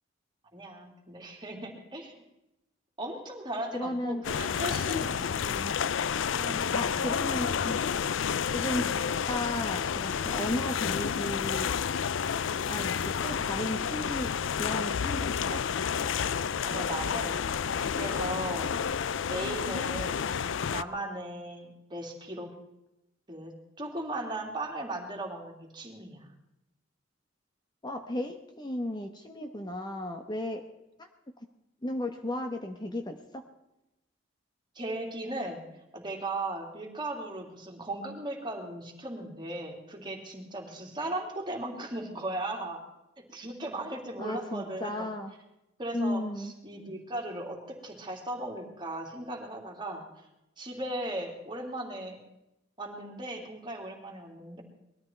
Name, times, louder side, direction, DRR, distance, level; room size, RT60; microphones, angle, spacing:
voice 1, 0.5-2.2 3.0-5.3 5.9-7.3 16.6-17.4 17.9-18.7 19.2-20.3 20.7-22.5 23.3-26.3 34.7-35.6 35.9-42.8 43.3-45.1 45.8-50.0 50.6-52.2 52.8-54.6, right 1 dB, 25° right, 1 dB, 2.9 m, -37 dB
voice 2, 3.7-4.2 5.3-5.7 6.7-7.9 8.5-11.7 12.7-15.7 27.8-30.6 31.0-31.1 31.8-33.4 44.2-45.3 45.9-46.5, left 1 dB, 20° left, 5 dB, 1.0 m, -35 dB
sound 1, 4.2-20.8, left 7 dB, 70° left, 0.5 m, -30 dB
20.5 x 13.5 x 4.5 m, 0.90 s
head